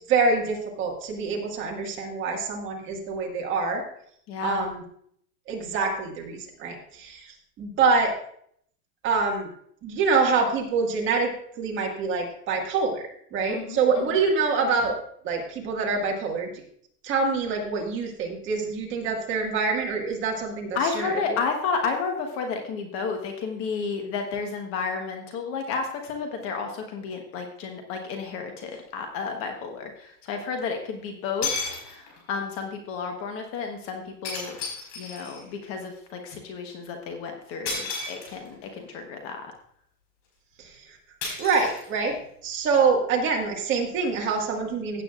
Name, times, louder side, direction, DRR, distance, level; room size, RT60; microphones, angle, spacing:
voice 1, 0.1-3.8 4.4-4.8 5.5-7.3 7.6-8.1 9.0-9.5 9.8-15.0 15.2-16.6 17.0-21.4 40.6-40.7 41.4-42.2 42.4-45.0, right 4 dB, 25° right, 0 dB, 1.9 m, -25 dB
voice 2, 4.3-4.7 13.5-14.2 20.7-31.5 31.8-34.6 35.0-39.4, left 5 dB, 30° left, 4 dB, 1.2 m, -32 dB
sound 1, 28.7-28.8 30.8-30.9 31.4-32.3 34.2-35.5 37.6-38.6 41.2-42.3, left 4 dB, 45° left, 4.9 m, -33 dB
16.0 x 8.3 x 2.5 m, 0.65 s
hypercardioid pair, 150°, 47 cm